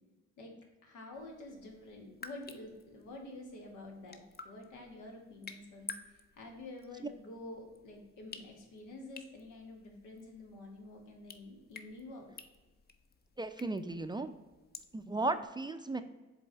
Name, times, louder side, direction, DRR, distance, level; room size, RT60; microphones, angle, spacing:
voice 1, 0.8-12.3, left 2 dB, 90° left, 1 dB, 1.7 m, -49 dB
sound 1, 1.1-15.5, left 4 dB, 30° left, 0.6 m, -53 dB
voice 2, 13.4-14.3 14.9-16.0, right 2 dB, 15° right, 9 dB, 0.4 m, -35 dB
7.3 x 3.5 x 4.5 m, 1.2 s
cardioid pair, 90°, 30 cm